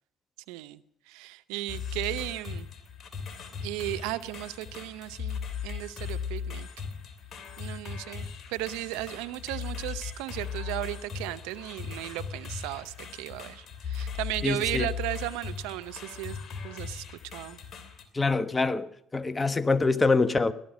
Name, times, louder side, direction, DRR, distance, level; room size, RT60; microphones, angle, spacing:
voice 1, 0.5-0.8 1.1-2.7 3.6-6.7 7.6-16.4 16.6-17.0 17.3-17.6, right 16 dB, 80° right, 0.7 m, -35 dB
sound 1, 1.7-18.0, left 6 dB, 50° left, 3.0 m, -38 dB
voice 2, 14.4-14.9 18.1-20.5, left 3 dB, 25° left, 1.1 m, -25 dB
18.0 x 12.0 x 6.2 m
hypercardioid pair, 60°, 0 cm